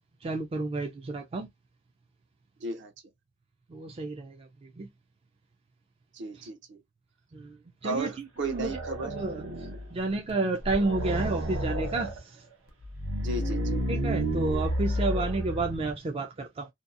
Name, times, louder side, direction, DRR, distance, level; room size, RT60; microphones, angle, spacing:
voice 1, 0.2-1.5 3.7-4.5 4.8-4.9 7.3-7.6 7.8-12.4 13.9-16.7, right 3 dB, 30° right, 0.3 m, -31 dB
voice 2, 2.6-2.9 6.1-6.8 7.8-9.1 13.2-13.8, right 2 dB, 60° right, 0.6 m, -34 dB
sound 1, 8.4-9.9 10.3-10.4 10.6-12.2 12.8-15.9, right 1 dB, 80° right, 0.9 m, -31 dB
2.7 x 2.3 x 2.4 m
head